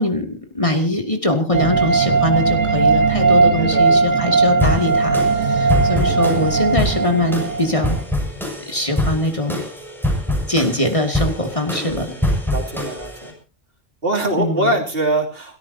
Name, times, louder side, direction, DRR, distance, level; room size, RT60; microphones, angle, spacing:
voice 1, 0.0-8.0 8.7-9.6 10.5-12.1 14.4-14.7, left 1 dB, 25° left, 3 dB, 2.5 m, -22 dB
sound 1, 1.5-8.0, right 4 dB, 85° right, 2.2 m, -18 dB
voice 2, 3.6-4.1 6.1-6.3 11.8-12.2 12.5-13.3 14.0-15.6, right 1 dB, 50° right, 1 dB, 3.3 m, -24 dB
sound 2, 4.6-13.3, left 1 dB, ahead, 6.8 m, -24 dB
29.5 x 13.5 x 2.8 m, 0.35 s
omnidirectional pair, 1.3 m